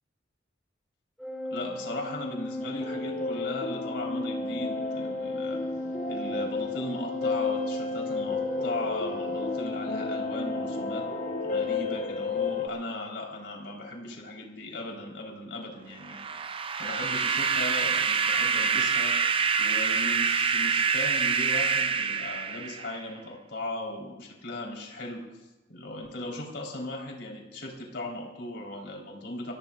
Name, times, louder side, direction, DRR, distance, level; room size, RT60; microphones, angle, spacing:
Organ, 1.2-11.9, left 1 dB, ahead, 2.3 m, -36 dB
voice 1, 1.5-5.6 6.1-11.1 11.4-16.2 16.8-19.2 19.6-25.2 25.7-29.5, left 2 dB, 65° left, -1 dB, 4.1 m, -37 dB
sound 1, 2.6-12.7, left 4 dB, 40° left, 1.3 m, -33 dB
sound 2, 16.0-23.0, right 6 dB, 30° right, 0.5 m, -26 dB
30.0 x 15.5 x 2.5 m, 1.1 s
head